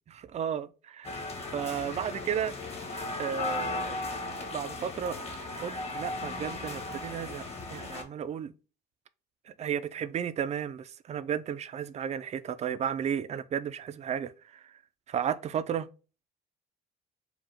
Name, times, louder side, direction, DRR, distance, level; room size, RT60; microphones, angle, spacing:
voice 1, 0.1-1.2 1.5-2.6 3.2-4.0 4.5-5.2 5.6-8.5 9.5-14.7 15.1-15.9, right 8 dB, 40° right, 0.5 m, -33 dB
sound 1, 1.0-8.0, left 2 dB, 35° left, 1.4 m, -36 dB
5.0 x 2.4 x 3.5 m
cardioid pair, 110°, 17 cm